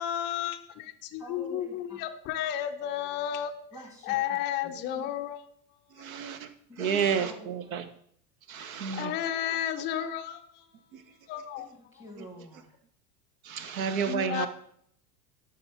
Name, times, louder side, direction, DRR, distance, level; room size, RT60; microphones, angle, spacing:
voice 1, 0.0-3.5 4.0-5.4 8.6-10.7 11.3-11.7 14.1-14.5, left 10 dB, 20° left, 6 dB, 0.5 m, -32 dB
voice 2, 1.2-2.0 3.7-4.4 4.6-5.0 6.7-7.8 11.6-12.7, equal, 5° right, 2 dB, 1.7 m, -47 dB
voice 3, 6.0-6.5 6.8-7.8 8.5-9.1 10.9-11.0 12.2-12.3 13.4-14.5, right 7 dB, 55° right, 11 dB, 0.9 m, -30 dB
11.5 x 4.3 x 3.6 m, 0.65 s
figure-of-eight pair, 80°, 50 cm